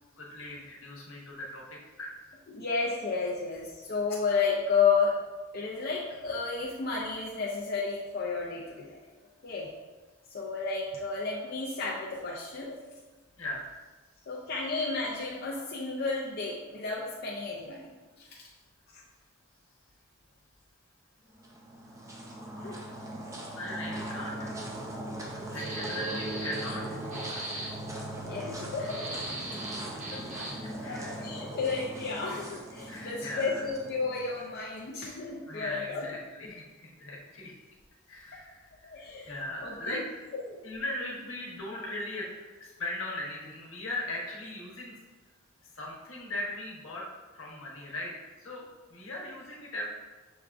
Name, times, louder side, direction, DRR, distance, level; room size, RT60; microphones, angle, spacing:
voice 1, 0.2-1.7 2.0-2.2 13.4-13.6 22.7-22.8 23.5-24.9 25.5-27.0 30.6-31.2 32.9-33.7 35.5-37.5 38.1-40.0 40.6-45.0 45.8-47.0 47.3-48.1 48.4-49.9, left 1 dB, 75° left, -3 dB, 1.1 m, -39 dB
voice 2, 2.5-5.1 5.5-9.0 9.4-9.7 10.3-12.8 14.3-17.9 18.2-18.4 22.6-22.8 26.0-26.1 28.2-29.2 30.1-30.4 30.9-36.1 38.8-39.3 39.6-40.0 40.5-40.6 49.2-49.3, left 4 dB, 50° left, -3 dB, 0.5 m, -32 dB
sound 1, 21.4-34.7, right 1 dB, 15° right, 0.5 m, -39 dB
sound 2, 25.6-26.8 27.1-27.7 28.8-30.7, right 1 dB, 35° right, 0.9 m, -39 dB
6.0 x 3.5 x 2.5 m, 1.3 s
head